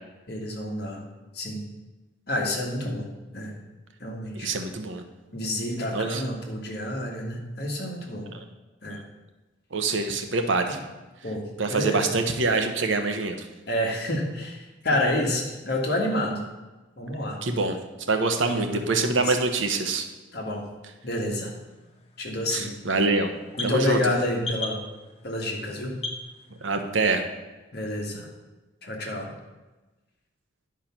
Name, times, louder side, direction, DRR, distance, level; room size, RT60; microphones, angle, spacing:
voice 1, 0.3-1.0 1.3-1.6 2.3-3.5 4.0-4.5 5.3-8.3 8.8-9.0 11.2-12.1 13.7-16.4 17.0-17.4 18.4-18.8 19.1-19.3 20.3-20.6 21.0-21.5 22.2-22.7 23.6-24.8 25.2-26.0 27.7-28.3 28.8-29.3, left 1 dB, 50° left, 0 dB, 1.6 m, -29 dB
voice 2, 4.3-5.0 5.9-6.3 8.3-8.4 9.7-10.8 11.6-13.5 17.4-17.8 18.1-20.1 22.5-23.3 23.6-24.1 26.6-27.2, right 3 dB, 70° right, 6 dB, 0.9 m, -25 dB
sound 1, 21.5-27.0, left 2 dB, 30° left, 0.8 m, -40 dB
10.5 x 4.8 x 5.8 m, 1.1 s
head